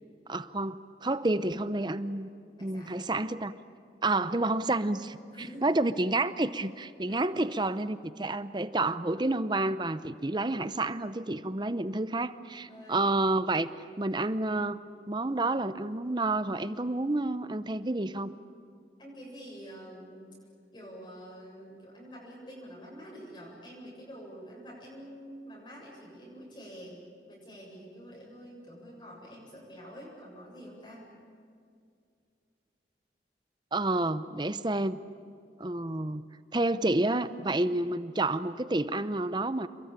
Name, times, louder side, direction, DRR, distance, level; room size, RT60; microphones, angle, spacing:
voice 1, 0.3-2.3 2.6-3.5 4.0-5.2 5.6-13.7 14.0-14.8 15.1-18.3 33.7-35.0 35.6-36.2 36.5-39.7, right 2 dB, 25° right, 13 dB, 0.7 m, -29 dB
voice 2, 2.6-3.1 5.3-5.8 7.0-7.2 12.7-13.0 19.0-20.4 20.7-31.1, equal, 25° left, -4 dB, 8.0 m, -47 dB
28.0 x 22.5 x 9.0 m, 2.3 s
head